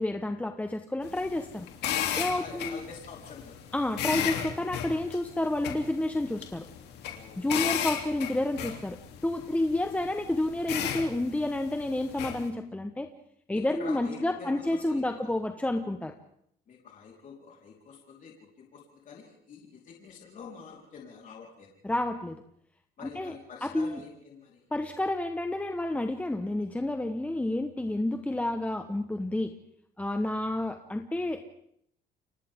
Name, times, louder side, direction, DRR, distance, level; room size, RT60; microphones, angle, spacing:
voice 1, 0.0-1.7 2.2-2.8 3.7-6.6 7.4-13.1 13.5-16.1 21.8-22.4 23.0-23.3 23.6-24.0 24.7-29.5 30.0-31.5, left 1 dB, 10° left, 6 dB, 1.2 m, -30 dB
sound 1, 1.0-12.5, left 9 dB, 80° left, 3.2 m, -35 dB
voice 2, 2.2-3.6 7.1-7.8 13.5-15.3 16.7-21.7 23.0-24.7, left 5 dB, 50° left, -2 dB, 4.3 m, -47 dB
29.5 x 24.5 x 3.7 m, 0.70 s
cardioid pair, 110°, 17 cm